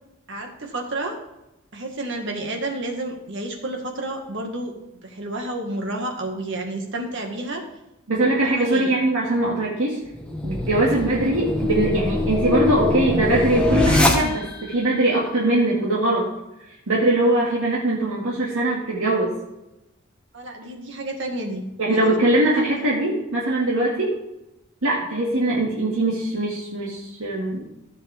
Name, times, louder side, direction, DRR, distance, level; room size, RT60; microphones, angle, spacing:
voice 1, 0.3-1.2 1.7-7.6 8.5-9.0 10.9-11.0 20.3-21.6 21.9-22.2 22.5-22.6, right 2 dB, 60° right, 2 dB, 1.9 m, -30 dB
voice 2, 8.1-10.0 10.4-16.2 16.9-19.3 21.8-24.1 24.8-27.6, right 1 dB, 85° right, -5 dB, 2.1 m, -21 dB
sound 1, 10.1-14.7, left 2 dB, 5° left, 1.2 m, -23 dB
14.5 x 7.6 x 3.5 m, 0.92 s
head